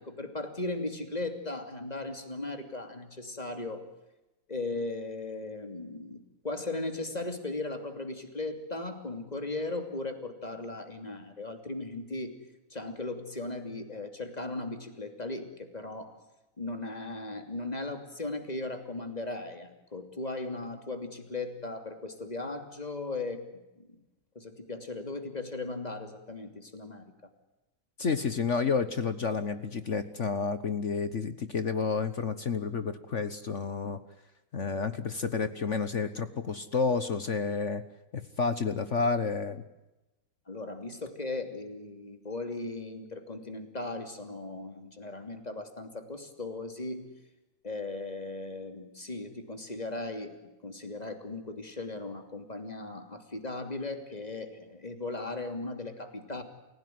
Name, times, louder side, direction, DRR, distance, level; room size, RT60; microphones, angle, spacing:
voice 1, 0.0-3.8 4.5-12.4 12.7-16.2 16.6-24.0 24.3-27.0 40.5-47.1 47.6-56.4, left 2 dB, 20° left, 7 dB, 3.0 m, -37 dB
voice 2, 28.0-34.0 34.5-37.8 38.1-39.6, left 5 dB, 45° left, 12 dB, 1.3 m, -30 dB
29.5 x 16.5 x 9.4 m, 1.0 s
omnidirectional pair, 2.0 m